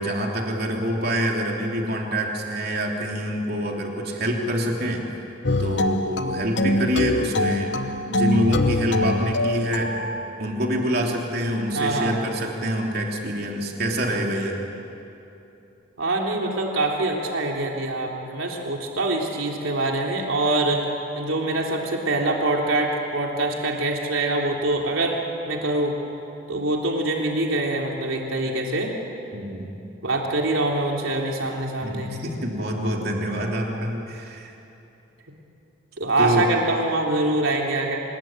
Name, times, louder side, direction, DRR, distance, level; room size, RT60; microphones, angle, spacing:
voice 1, 0.0-5.0 5.6-7.8 8.1-10.0 10.4-14.6 29.3-29.7 31.8-34.5 36.2-36.5, equal, 50° right, 0 dB, 3.4 m, -26 dB
sound 1, 5.4-10.3, left 1 dB, 55° left, 1.1 m, -24 dB
voice 2, 11.7-12.2 16.0-20.8 21.1-25.1 25.5-25.9 26.5-28.9 30.0-32.1 36.0-38.0, right 2 dB, 80° right, 0 dB, 3.3 m, -24 dB
26.0 x 21.0 x 9.0 m, 3.0 s
head